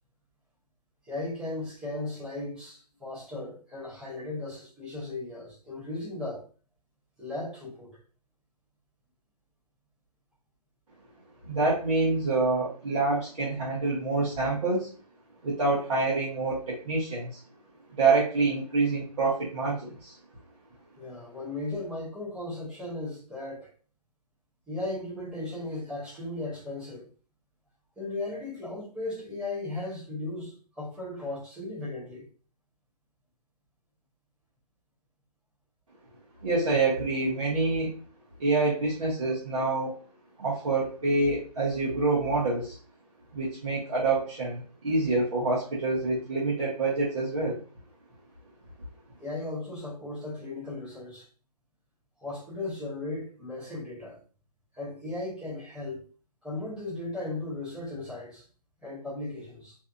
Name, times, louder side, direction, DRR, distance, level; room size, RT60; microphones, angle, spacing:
voice 1, 1.0-6.4 7.2-8.0 21.0-23.7 24.7-27.1 28.0-32.3 49.2-51.3 52.2-54.2 54.7-56.1 56.4-58.4 58.8-59.8, left 2 dB, 5° right, 0.6 m, -36 dB
voice 2, 11.4-14.9 15.4-17.4 18.0-20.2 36.4-37.9 38.4-39.9 40.4-42.8 43.3-47.6, right 3 dB, 55° right, 0.9 m, -26 dB
2.6 x 2.4 x 2.4 m
hypercardioid pair, 160°, 20 cm